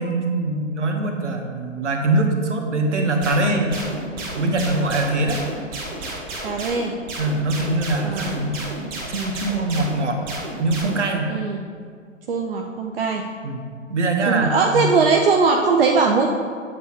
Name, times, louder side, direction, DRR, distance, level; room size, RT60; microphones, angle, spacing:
voice 1, 0.0-3.8 4.3-5.4 7.2-8.6 9.1-10.2 10.6-11.3 13.4-13.6 13.9-14.9, right 2 dB, 65° right, 3 dB, 1.3 m, -22 dB
sound 1, 3.2-11.1, right 2 dB, 25° right, 1.3 m, -32 dB
voice 2, 6.4-6.9 8.0-8.3 11.3-11.7 12.3-13.2 14.3-16.3, right 4 dB, 50° right, 2 dB, 0.6 m, -20 dB
8.7 x 8.1 x 3.0 m, 2.1 s
figure-of-eight pair, 120°, 39 cm